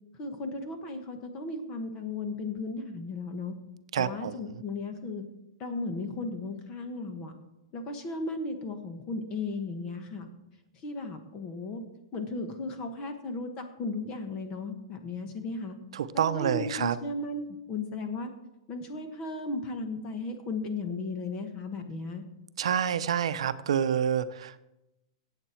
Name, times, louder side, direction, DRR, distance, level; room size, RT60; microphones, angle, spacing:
voice 1, 0.2-3.5 4.0-5.2 5.6-7.3 7.7-10.3 10.8-11.8 12.1-15.8 16.1-18.3 18.7-22.2, left 3 dB, 25° left, 6 dB, 1.3 m, -35 dB
voice 2, 3.9-4.6 15.9-17.0 22.6-24.6, right 8 dB, 75° right, 12 dB, 0.6 m, -28 dB
16.0 x 8.1 x 4.5 m, 0.94 s
supercardioid pair, 170°, 3 cm